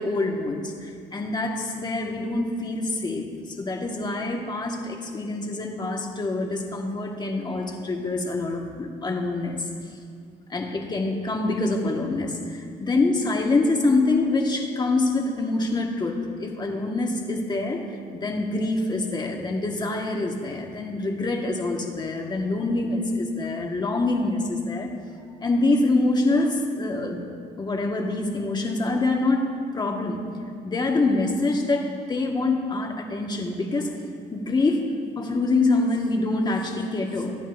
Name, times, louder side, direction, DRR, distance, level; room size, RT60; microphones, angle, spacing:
voice 1, 0.0-9.7 10.5-17.9 18.1-24.9 25.4-27.2 27.6-30.2 30.6-33.9 34.3-34.8 35.2-37.3, left 2 dB, 25° left, 1 dB, 1.7 m, -25 dB
24.0 x 10.5 x 2.7 m, 2.3 s
cardioid pair, 110°, 17 cm